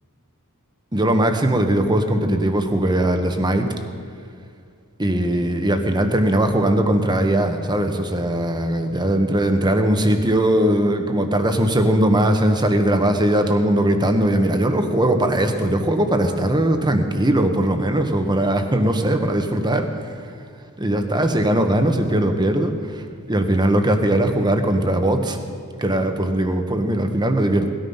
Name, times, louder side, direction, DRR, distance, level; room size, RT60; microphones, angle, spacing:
voice 1, 0.9-3.7 5.0-20.2 20.8-25.4 25.8-27.7, right 1 dB, 20° right, 6 dB, 1.2 m, -20 dB
19.0 x 13.0 x 5.6 m, 2.3 s
head